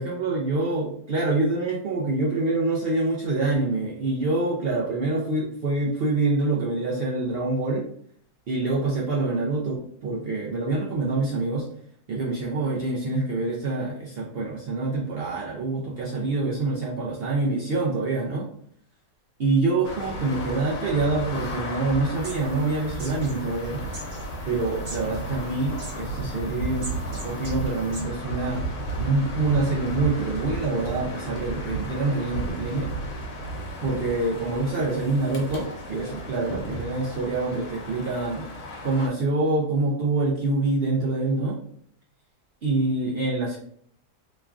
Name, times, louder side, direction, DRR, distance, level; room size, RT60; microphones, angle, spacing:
voice 1, 0.0-7.8 8.5-11.7 12.1-18.5 19.4-23.8 24.4-26.9 27.2-28.7 29.0-32.9 33.8-38.5 38.8-41.6 42.6-43.6, right 2 dB, 80° right, -4 dB, 0.5 m, -26 dB
sound 1, 19.8-39.1, right 1 dB, 85° left, 1.2 m, -34 dB
sound 2, 22.1-28.0, right 2 dB, 35° right, 0.9 m, -42 dB
3.1 x 2.3 x 2.3 m, 0.63 s
omnidirectional pair, 1.6 m